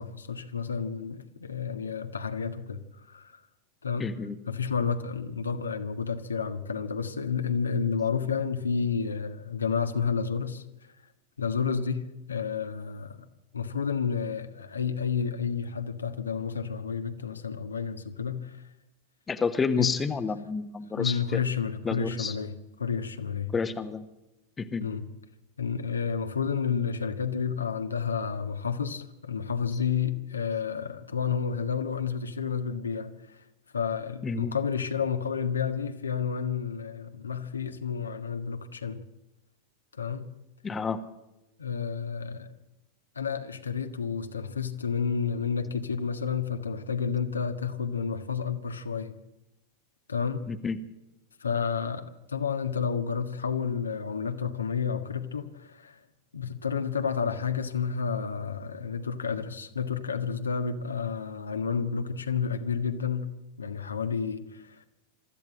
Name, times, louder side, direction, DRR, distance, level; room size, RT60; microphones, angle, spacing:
voice 1, 0.0-3.4 3.8-4.1 4.5-10.6 11.4-12.0 12.3-13.2 13.5-18.6 19.8-19.9 21.0-23.5 24.8-25.0 25.6-33.4 33.7-39.0 40.0-40.3 41.6-42.5 43.1-49.2 50.1-50.4 51.4-56.0 56.3-63.3 63.6-64.8, left 6 dB, 75° left, 1.5 m, -30 dB
voice 2, 4.0-4.3 19.3-21.4 21.8-22.3 23.5-24.1 24.6-24.9 34.2-34.6 40.6-41.0 50.5-50.8, left 5 dB, 15° left, 1.3 m, -29 dB
24.0 x 14.0 x 7.8 m
figure-of-eight pair, 90°, 0 cm